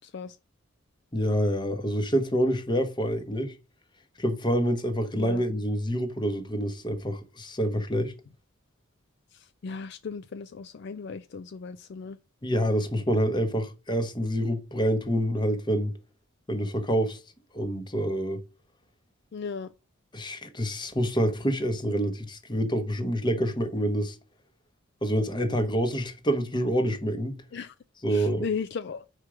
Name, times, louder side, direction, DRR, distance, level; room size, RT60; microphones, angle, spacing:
voice 1, 0.0-0.4 5.1-5.4 9.3-12.2 19.3-19.7 27.5-27.7 28.1-29.0, left 5 dB, 55° left, 0.4 m, -36 dB
voice 2, 1.1-3.5 4.2-8.1 12.4-15.9 16.5-17.2 17.5-18.4 20.1-24.2 25.0-27.3 28.0-28.5, equal, 20° left, 1.0 m, -27 dB
4.9 x 4.5 x 6.0 m
head